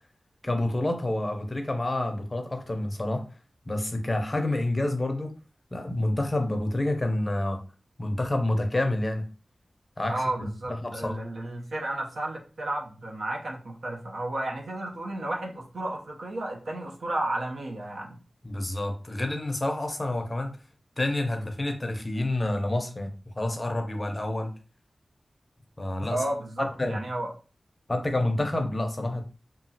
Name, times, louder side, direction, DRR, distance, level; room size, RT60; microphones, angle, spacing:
voice 1, 0.4-3.2 3.7-5.3 5.7-7.6 8.0-9.3 10.0-11.2 18.4-20.5 21.0-24.5 25.8-26.2 26.6-27.0 27.9-29.2, left 1 dB, 25° left, 5 dB, 0.5 m, -28 dB
voice 2, 10.1-18.2 26.1-27.3, right 1 dB, 80° right, 0 dB, 0.6 m, -32 dB
2.9 x 2.3 x 2.7 m, 0.36 s
wide cardioid pair, 100°, 0 cm